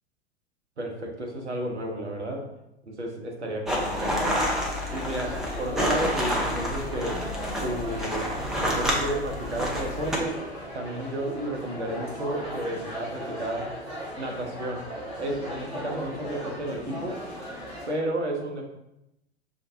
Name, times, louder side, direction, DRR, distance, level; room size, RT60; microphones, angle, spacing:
voice 1, 0.8-2.5 2.9-4.3 4.9-7.3 7.6-8.3 8.6-10.4 10.7-13.7 14.2-14.8 15.2-17.2 17.9-18.6, right 1 dB, 85° right, 1 dB, 0.8 m, -32 dB
sound 1, 3.7-10.2, equal, ahead, 0.3 m, -29 dB
sound 2, 3.7-17.9, equal, 15° right, 1.4 m, -38 dB
5.0 x 2.5 x 2.6 m, 0.87 s
figure-of-eight pair, 90°, 34 cm